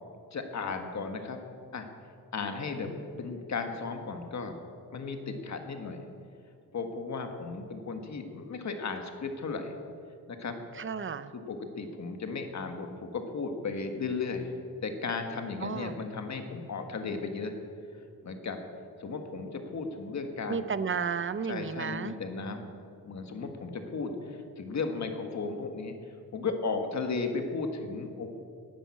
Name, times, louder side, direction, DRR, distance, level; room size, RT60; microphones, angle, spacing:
voice 1, 0.3-1.4 1.7-1.9 2.3-4.6 4.9-6.1 6.7-9.7 10.3-10.6 11.3-14.5 14.8-17.5 18.2-18.6 19.0-20.7 21.5-22.7 23.0-26.0 26.3-28.4, left 4 dB, 45° left, 5 dB, 1.6 m, -35 dB
voice 2, 10.8-11.3 15.6-16.0 20.5-22.2, right 6 dB, 35° right, 13 dB, 0.6 m, -33 dB
11.0 x 10.5 x 8.5 m, 2.4 s
wide cardioid pair, 135°, 38 cm